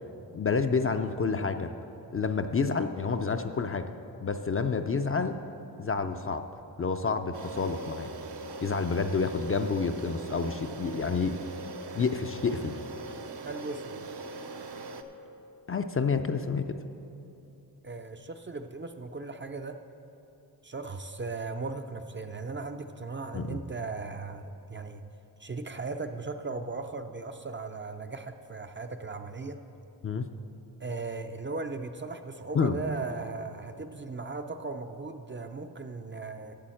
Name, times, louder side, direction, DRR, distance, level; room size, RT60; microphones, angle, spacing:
voice 1, 0.3-1.7 2.1-3.9 4.2-5.4 5.8-6.4 6.8-8.1 8.6-11.4 11.9-12.8 15.7-16.8 23.3-23.6 30.0-30.3 32.5-32.8, left 5 dB, 35° left, 7 dB, 0.4 m, -29 dB
sound 1, 7.3-15.0, right 3 dB, 70° right, 0.7 m, -41 dB
voice 2, 13.4-14.2 17.8-19.8 20.6-25.0 25.4-29.6 30.8-36.5, right 3 dB, 30° right, 7 dB, 0.4 m, -37 dB
8.4 x 6.9 x 7.7 m, 2.8 s
wide cardioid pair, 100°, 42 cm